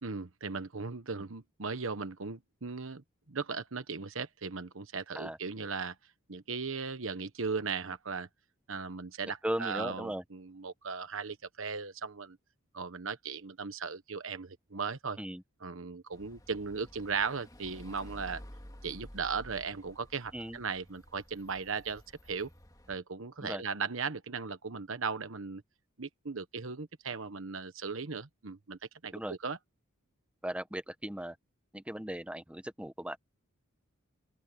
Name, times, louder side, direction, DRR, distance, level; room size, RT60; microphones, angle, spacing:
voice 1, 0.0-5.9 6.3-8.3 8.7-12.4 12.7-15.2 15.6-18.4 18.8-22.5 22.9-25.6 26.0-29.6, right 5 dB, 65° right, 1.2 m, -37 dB
voice 2, 9.4-10.2 15.2-15.4 20.3-20.6 23.4-23.6 29.1-29.4 30.4-31.4 31.7-33.2, right 1 dB, 5° right, 1.1 m, -37 dB
sound 1, 16.1-23.0, equal, 15° left, 2.9 m, -52 dB
open air
head